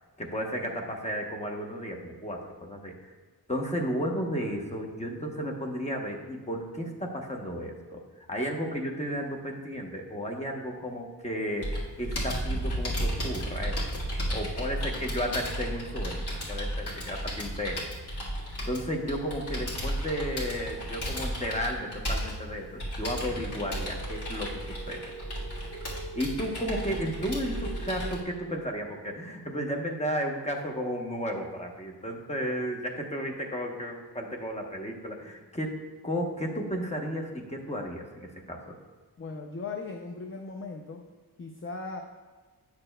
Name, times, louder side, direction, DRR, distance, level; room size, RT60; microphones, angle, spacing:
voice 1, 0.2-3.1 3.5-14.0 14.3-17.8 18.7-24.6 24.9-25.1 26.1-35.8 36.0-38.7, equal, 15° left, 1 dB, 0.9 m, -33 dB
Computer keyboard, 11.6-28.2, equal, 75° left, 1.8 m, -34 dB
sound 1, 23.2-28.2, right 4 dB, 85° right, 0.5 m, -43 dB
voice 2, 39.2-41.0 41.4-42.0, left 4 dB, 35° left, 2 dB, 0.5 m, -38 dB
9.4 x 6.7 x 2.2 m, 1.4 s
wide cardioid pair, 140°, 40 cm